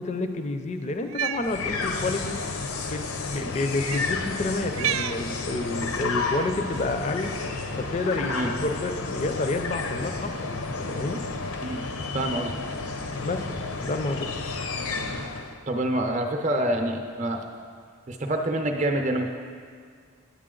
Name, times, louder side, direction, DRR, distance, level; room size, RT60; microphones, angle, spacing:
voice 1, 0.0-2.4 2.9-7.3 7.8-10.6 10.9-11.2 13.2-13.5 13.8-14.3, left 2 dB, 30° left, 8 dB, 0.4 m, -29 dB
Cat, 1.0-1.5 2.5-2.7 3.8-4.1 4.7-5.2 6.2-6.5, right 9 dB, 80° right, 0.3 m, -30 dB
sound 1, 1.3-15.6, left 3 dB, 80° left, 0.7 m, -31 dB
voice 2, 12.1-12.5 15.7-17.4 18.1-19.3, right 1 dB, 35° right, 4 dB, 0.6 m, -26 dB
9.6 x 8.2 x 3.8 m, 2.1 s
head